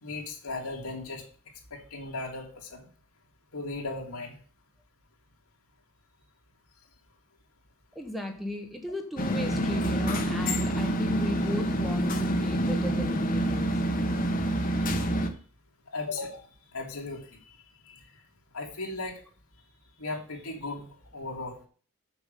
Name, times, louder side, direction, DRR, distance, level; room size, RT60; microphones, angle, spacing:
voice 1, 0.0-1.2 1.7-2.8 3.5-4.3 15.9-16.5 16.7-17.5 17.9-18.0 18.5-19.2 20.0-20.9 21.1-21.7, left 3 dB, 85° left, 0 dB, 2.9 m, -36 dB
voice 2, 7.9-13.8, left 1 dB, ahead, 3 dB, 1.2 m, -35 dB
sound 1, 9.2-15.3, right 1 dB, 40° left, 1.3 m, -27 dB
7.1 x 7.0 x 6.8 m, 0.43 s
head